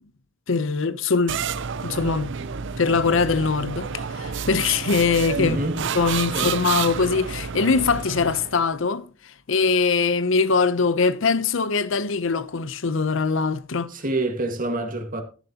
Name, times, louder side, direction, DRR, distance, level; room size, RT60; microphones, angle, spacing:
voice 1, 0.5-1.4 1.8-2.3 2.8-3.9 4.2-5.6 5.9-9.1 9.5-13.9, left 4 dB, 65° left, 0.7 m, -22 dB
sound 1, 1.3-8.7, right 6 dB, 60° right, 0.7 m, -30 dB
voice 2, 5.3-5.8 6.3-6.6 13.9-15.2, right 2 dB, 40° right, 1.8 m, -27 dB
12.5 x 11.0 x 2.9 m
head